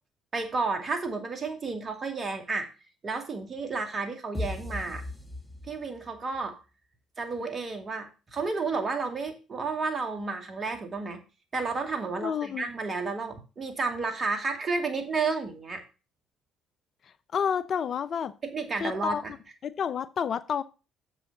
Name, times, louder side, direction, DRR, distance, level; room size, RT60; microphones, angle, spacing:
voice 1, 0.3-2.7 3.0-5.0 5.7-6.6 7.2-11.2 11.5-15.8 18.5-19.3, right 4 dB, 40° right, 2.3 m, -31 dB
sound 1, 4.3-6.2, left 1 dB, 5° left, 2.2 m, -36 dB
voice 2, 12.2-12.6 17.3-18.3 18.8-19.2 19.6-20.6, left 7 dB, 50° left, 0.6 m, -29 dB
7.5 x 6.3 x 6.6 m
hypercardioid pair, 50°, 0 cm